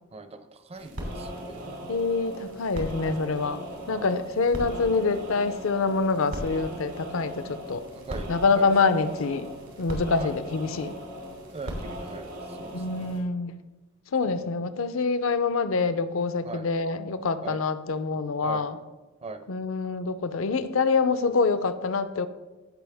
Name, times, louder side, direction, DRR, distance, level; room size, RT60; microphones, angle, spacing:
voice 1, 0.1-1.9 3.9-4.3 7.9-8.7 10.2-10.3 11.5-13.2 14.3-14.5 16.4-16.7 17.4-17.6 18.4-18.7 19.2-19.4, right 3 dB, 30° right, 11 dB, 0.5 m, -41 dB
sound 1, 0.7-13.2, equal, 85° right, 2.7 m, -38 dB
voice 2, 1.9-3.6 3.9-7.8 8.3-9.5 9.8-10.9 12.7-13.5 14.1-18.8 19.5-22.3, left 4 dB, 70° left, 12 dB, 0.6 m, -26 dB
15.0 x 5.5 x 3.5 m, 1.2 s
head